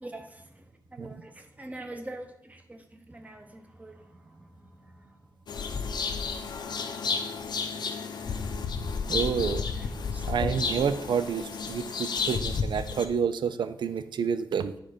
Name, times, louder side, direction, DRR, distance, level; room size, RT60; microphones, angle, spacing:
voice 1, 0.0-5.2 9.8-10.5, right 1 dB, 20° right, 6 dB, 0.9 m, -44 dB
sound 1, 5.5-13.0, left 5 dB, 70° left, 0.7 m, -32 dB
voice 2, 9.1-9.7 10.2-14.7, right 7 dB, 85° right, 12 dB, 0.5 m, -29 dB
9.3 x 3.7 x 5.0 m, 0.75 s
wide cardioid pair, 115°, 8 cm